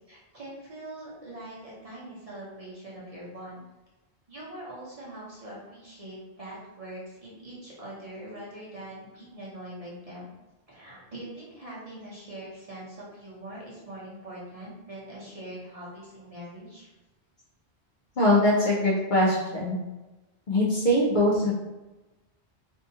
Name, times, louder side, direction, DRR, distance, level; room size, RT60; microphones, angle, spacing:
voice 1, 0.1-3.6 4.3-10.3 10.7-16.9, right 1 dB, 35° right, -7 dB, 0.8 m, -42 dB
voice 2, 18.2-19.8 20.5-21.5, left 1 dB, 55° left, -5 dB, 0.6 m, -22 dB
2.7 x 2.4 x 2.7 m, 1.1 s
omnidirectional pair, 1.1 m